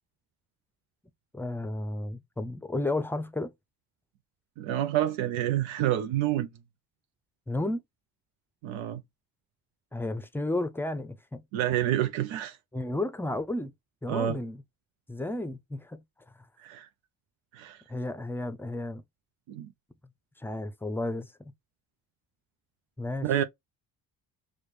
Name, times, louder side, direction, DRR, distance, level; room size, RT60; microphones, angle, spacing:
voice 1, 1.3-3.5 7.5-7.8 9.9-11.4 12.7-13.7 14.0-14.6 15.1-16.0 17.9-19.0 20.4-21.5 23.0-23.3, left 2 dB, 5° left, 0.5 m, -32 dB
voice 2, 4.6-6.5 8.6-9.0 11.5-12.6 14.1-14.4 16.6-16.9 17.5-17.8 19.5-19.7 23.2-23.4, right 11 dB, 80° right, 0.6 m, -28 dB
5.0 x 2.1 x 3.1 m
supercardioid pair, 60°, 46 cm